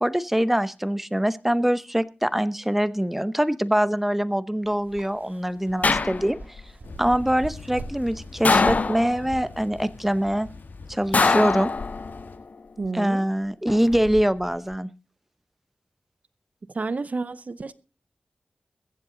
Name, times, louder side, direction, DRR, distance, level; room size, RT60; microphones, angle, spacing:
voice 1, 0.0-6.6 7.0-10.5 10.9-11.7 12.9-14.9, equal, 5° right, 0.7 m, -24 dB
sound 1, 4.6-10.6, right 3 dB, 80° right, 1.9 m, -44 dB
sound 2, 5.8-6.6 8.5-9.4 11.1-12.3 13.7-14.2, left 4 dB, 50° left, 0.6 m, -23 dB
Thunder / Rain, 6.8-12.4, left 3 dB, 85° left, 1.6 m, -43 dB
voice 2, 12.8-13.3 16.7-17.7, right 3 dB, 50° right, 0.7 m, -30 dB
22.5 x 7.7 x 3.8 m
wide cardioid pair, 75°, 3 cm